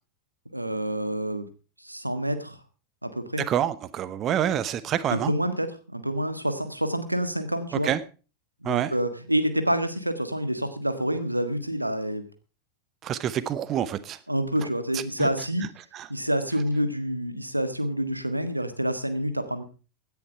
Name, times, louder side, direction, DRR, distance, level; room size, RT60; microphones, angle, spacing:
voice 1, 0.5-1.4 1.8-2.6 3.0-3.4 5.1-7.9 8.6-12.2 14.3-15.7 16.1-19.6, right 1 dB, 85° right, 1.6 m, -27 dB
voice 2, 3.4-5.3 7.8-8.0 8.6-8.9 13.0-14.2 14.9-15.3 15.9-16.1, right 10 dB, 30° right, 0.8 m, -27 dB
16.5 x 10.5 x 4.5 m
figure-of-eight pair, 90°, 0 cm